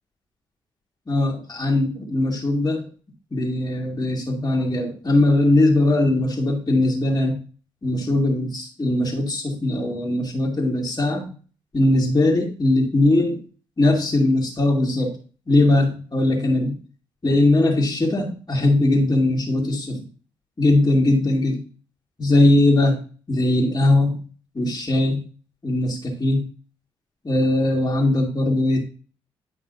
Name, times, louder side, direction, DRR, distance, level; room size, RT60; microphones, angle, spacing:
voice 1, 1.1-2.9 3.3-7.4 7.8-11.3 11.7-13.4 13.8-15.2 15.5-16.7 17.2-20.0 20.6-21.6 22.2-23.0 23.3-24.2 24.5-25.2 25.6-26.4 27.2-28.8, left 2 dB, 30° left, -5 dB, 2.1 m, -20 dB
9.7 x 5.3 x 2.7 m, 0.37 s
hypercardioid pair, 40°, 13 cm